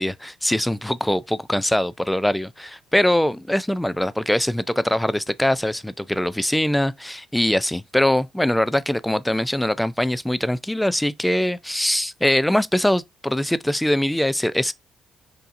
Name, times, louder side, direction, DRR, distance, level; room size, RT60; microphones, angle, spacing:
voice 1, 0.0-14.7, left 1 dB, 5° left, 0.3 m, -22 dB
5.4 x 2.7 x 2.5 m
cardioid pair, 90°, 0 cm